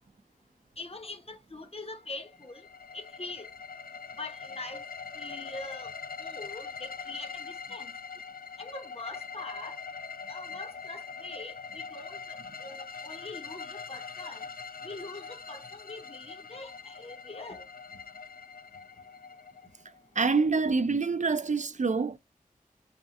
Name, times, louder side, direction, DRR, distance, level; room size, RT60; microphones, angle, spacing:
voice 1, 0.8-2.7 2.9-3.5 4.2-4.8 5.1-5.9 6.2-7.9 8.6-9.8 10.3-14.5 14.8-17.6, left 2 dB, 40° left, 0.9 m, -43 dB
sound 1, 2.2-20.0, left 5 dB, 75° left, 0.4 m, -43 dB
voice 2, 20.2-22.2, right 4 dB, 55° right, 0.5 m, -26 dB
3.6 x 2.3 x 4.1 m
wide cardioid pair, 45°, 15 cm